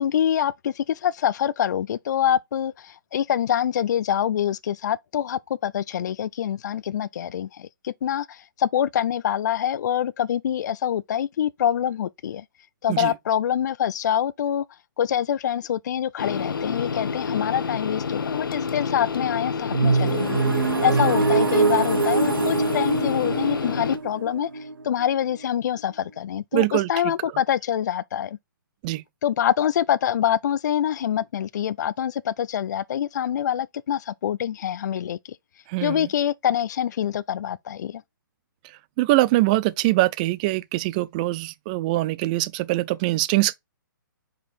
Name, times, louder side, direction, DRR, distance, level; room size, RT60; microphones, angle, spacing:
voice 1, 0.0-12.4 12.8-14.6 15.0-20.4 20.8-28.4 29.2-35.4 35.8-38.0, left 10 dB, 55° left, 0.3 m, -25 dB
sound 1, 16.2-24.0, left 5 dB, 75° left, 0.9 m, -29 dB
sound 2, 19.7-25.5, right 4 dB, 90° right, 1.0 m, -23 dB
voice 2, 26.5-26.9 28.8-29.0 35.7-36.1 39.0-43.5, right 18 dB, 20° right, 0.4 m, -23 dB
5.1 x 4.2 x 4.4 m
hypercardioid pair, 150°, 11 cm